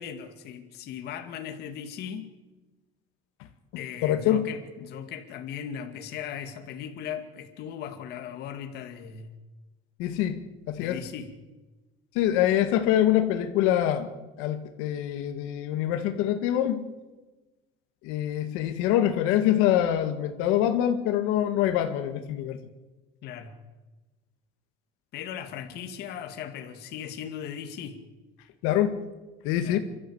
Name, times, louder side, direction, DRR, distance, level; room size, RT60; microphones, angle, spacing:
voice 1, 0.0-2.3 3.8-9.3 10.8-11.3 23.2-23.6 25.1-28.0 29.6-29.8, left 8 dB, 50° left, 2.3 m, -38 dB
voice 2, 4.0-4.4 10.0-10.4 10.7-11.0 12.2-14.1 14.4-16.9 18.0-22.6 28.6-29.0 29.4-29.8, left 11 dB, 90° left, 2.1 m, -25 dB
29.0 x 13.5 x 8.1 m
cardioid pair, 175°, 21 cm